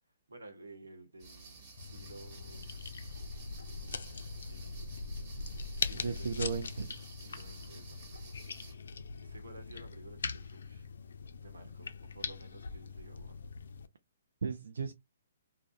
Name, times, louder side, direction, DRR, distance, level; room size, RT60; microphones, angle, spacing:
voice 1, 0.3-2.7 3.3-5.1 5.8-6.5 7.2-8.0 8.4-8.9 9.2-10.9 11.4-13.4, right 2 dB, 85° right, 0.9 m, -54 dB
sound 1, 1.2-8.7, right 4 dB, 35° right, 1.3 m, -53 dB
sound 2, 1.8-13.9, left 4 dB, 75° left, 0.3 m, -41 dB
voice 2, 5.9-7.0 14.4-14.9, right 5 dB, 70° right, 0.3 m, -35 dB
2.4 x 2.0 x 2.5 m
hypercardioid pair, 135°, 0 cm